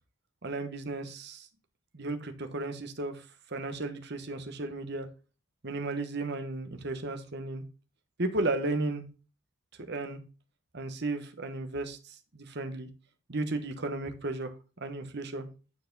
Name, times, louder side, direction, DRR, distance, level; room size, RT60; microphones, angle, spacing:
voice 1, 0.4-1.5 1.9-3.2 3.5-5.1 5.6-7.6 8.2-9.0 9.9-10.2 10.7-12.9 13.3-14.5 14.8-15.5, right 2 dB, 50° right, 6 dB, 1.1 m, -34 dB
9.2 x 4.8 x 3.9 m, 0.33 s
head